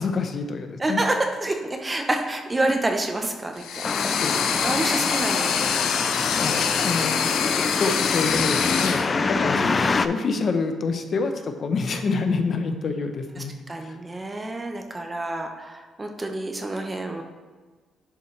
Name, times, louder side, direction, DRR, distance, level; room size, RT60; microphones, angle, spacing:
voice 1, 0.0-1.0 4.2-4.6 6.1-7.2 7.7-13.5 13.8-14.0, left 4 dB, 50° left, 7 dB, 0.7 m, -27 dB
voice 2, 0.8-5.8 9.4-10.1 13.4-17.2, right 2 dB, 20° right, 3 dB, 0.8 m, -28 dB
sound 1, 3.6-9.1, left 7 dB, 85° left, 0.6 m, -25 dB
sound 2, 3.8-10.1, left 4 dB, 35° left, 0.3 m, -26 dB
11.0 x 4.3 x 3.2 m, 1.4 s
cardioid pair, 90°, 0 cm